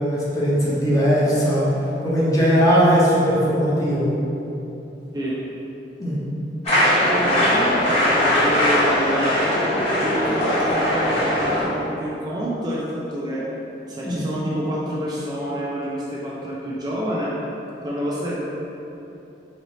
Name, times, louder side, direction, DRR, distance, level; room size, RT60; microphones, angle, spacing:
voice 1, 0.0-1.7 2.0-4.1 6.0-6.2 14.0-14.2, equal, 20° left, -7 dB, 0.7 m, -19 dB
sound 1, 6.6-11.6, left 1 dB, 35° left, 1.1 m, -20 dB
voice 2, 7.0-9.6 9.9-13.5 13.9-17.4 17.8-18.3, equal, 25° right, -6 dB, 0.4 m, -28 dB
3.1 x 2.9 x 4.0 m, 2.9 s
head